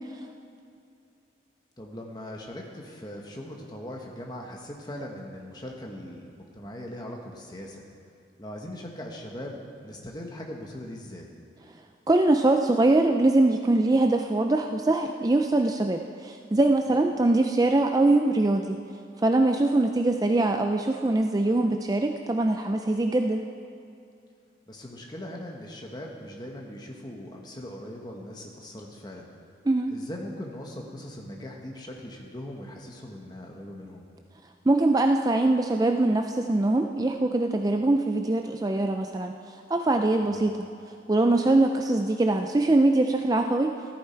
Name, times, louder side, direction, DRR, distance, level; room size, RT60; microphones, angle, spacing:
voice 1, 1.8-7.8 8.4-11.3 16.9-17.0 24.7-29.3 29.9-34.0 40.3-40.4, left 1 dB, 20° left, 0 dB, 1.5 m, -40 dB
voice 2, 12.1-18.8 19.2-23.4 29.7-29.9 34.7-40.6 41.1-43.8, right 2 dB, 20° right, 4 dB, 0.4 m, -23 dB
14.0 x 14.0 x 4.5 m, 2.5 s
head